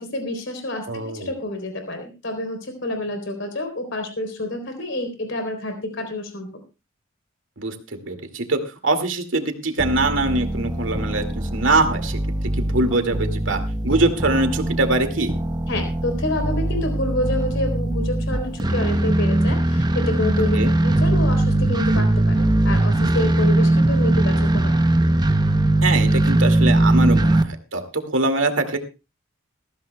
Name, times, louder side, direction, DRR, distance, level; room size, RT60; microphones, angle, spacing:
voice 1, 0.0-6.5 15.7-20.6 20.8-24.8, left 1 dB, 65° left, 5 dB, 3.6 m, -28 dB
voice 2, 0.9-1.3 7.6-12.2 12.6-15.3 20.5-20.7 25.8-28.8, right 2 dB, 70° right, 7 dB, 2.2 m, -23 dB
sound 1, 9.8-27.4, right 1 dB, 20° right, 0.8 m, -20 dB
20.5 x 15.0 x 2.3 m, 0.29 s
head